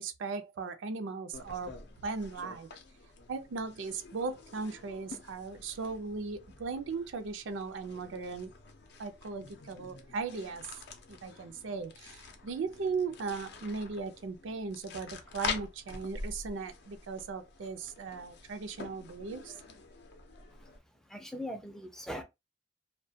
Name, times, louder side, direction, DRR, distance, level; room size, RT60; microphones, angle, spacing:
voice 1, 0.0-1.8 2.0-2.7 3.3-8.5 9.0-10.8 11.1-19.6, right 4 dB, 90° right, 0.4 m, -38 dB
sound 1, 1.3-20.8, left 4 dB, 60° left, 0.5 m, -46 dB
voice 2, 21.0-22.2, equal, 5° left, 0.3 m, -40 dB
2.2 x 2.1 x 2.7 m
head